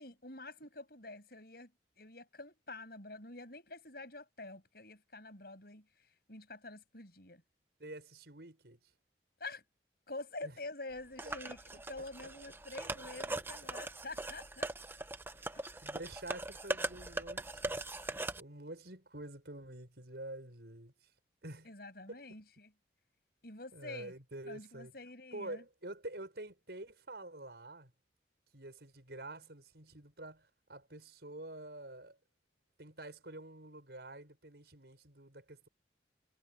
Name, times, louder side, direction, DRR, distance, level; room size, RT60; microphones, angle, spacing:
voice 1, 0.0-1.7 2.0-5.9 6.3-7.4 9.4-9.6 10.1-14.7 15.5-15.7 21.6-22.7 23.4-24.1 24.4-25.6, left 2 dB, 60° left, 7.6 m, -47 dB
voice 2, 7.8-8.8 10.4-10.5 15.3-21.1 21.4-21.7 22.1-22.2 23.7-24.9 25.3-27.9 28.5-32.2 32.8-35.7, right 1 dB, 70° right, 5.7 m, -48 dB
sound 1, 11.2-18.4, right 2 dB, 10° right, 0.8 m, -40 dB
head